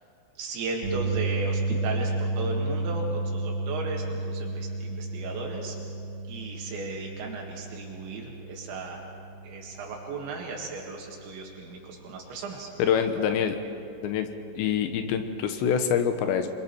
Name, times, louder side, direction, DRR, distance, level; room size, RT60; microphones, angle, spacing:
voice 1, 0.4-5.8 6.3-9.0 9.4-12.7 13.2-13.3, right 3 dB, 80° right, -1 dB, 4.1 m, -36 dB
sound 1, 0.8-13.1 13.4-13.7 15.9-16.0, right 2 dB, 35° right, 1.9 m, -33 dB
voice 2, 12.8-13.6 14.0-14.3 14.6-16.5, left 8 dB, 80° left, 7 dB, 3.3 m, -25 dB
28.0 x 23.0 x 4.6 m, 2.7 s
omnidirectional pair, 5.3 m